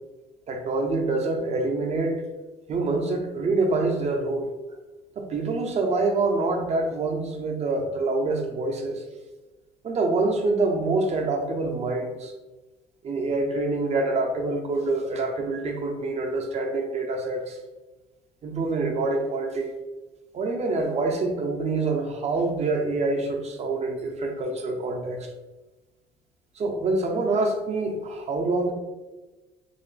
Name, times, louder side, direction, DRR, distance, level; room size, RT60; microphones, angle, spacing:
voice 1, 0.5-2.2 2.7-4.5 5.2-9.0 9.8-12.3 13.0-17.6 18.4-19.7 20.3-25.3 26.6-28.7, right 3 dB, 40° right, 3 dB, 0.6 m, -26 dB
3.2 x 2.0 x 3.9 m, 1.2 s
cardioid pair, 110°, 17 cm